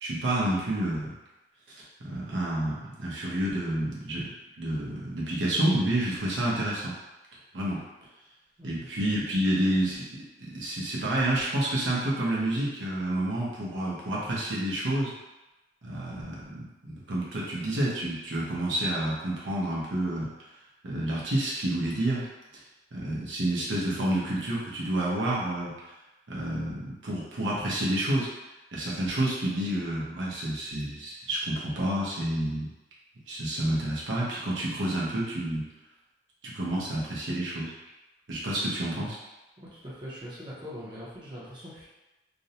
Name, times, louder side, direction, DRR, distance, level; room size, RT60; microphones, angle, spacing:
voice 1, 0.0-1.2 2.0-6.9 7.5-7.8 8.6-10.0 10.5-15.1 15.8-20.3 20.8-22.3 22.9-25.7 26.3-28.3 28.7-32.7 33.3-35.6 36.5-37.7 38.3-39.2, right 1 dB, 85° right, -5 dB, 0.7 m, -29 dB
voice 2, 39.6-41.8, equal, 25° right, -8 dB, 0.6 m, -42 dB
2.5 x 2.0 x 2.7 m, 1.0 s
head